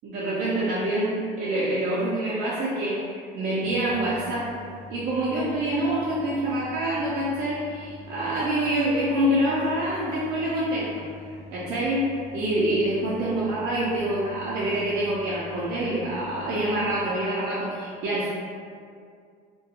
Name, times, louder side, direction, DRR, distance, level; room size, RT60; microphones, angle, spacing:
voice 1, 0.0-4.5 4.9-11.1 11.5-18.3, right 1 dB, 50° right, -8 dB, 0.5 m, -26 dB
sound 1, 3.6-17.0, left 3 dB, ahead, 0.6 m, -45 dB
2.3 x 2.2 x 2.8 m, 2.2 s
cardioid pair, 150°, 20 cm